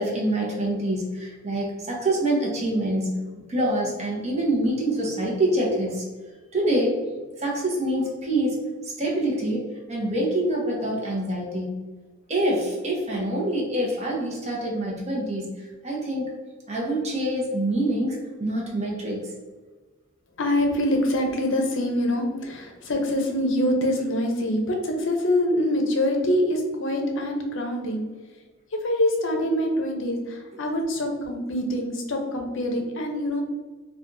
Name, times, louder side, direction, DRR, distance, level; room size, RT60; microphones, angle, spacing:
voice 1, 0.0-3.2 3.5-6.1 6.5-7.0 7.4-11.8 12.3-16.3 16.7-19.3, right 1 dB, 35° right, -2 dB, 0.9 m, -26 dB
voice 2, 20.4-28.0 28.8-33.4, left 1 dB, 65° left, 2 dB, 0.7 m, -25 dB
4.4 x 2.3 x 2.6 m, 1.3 s
head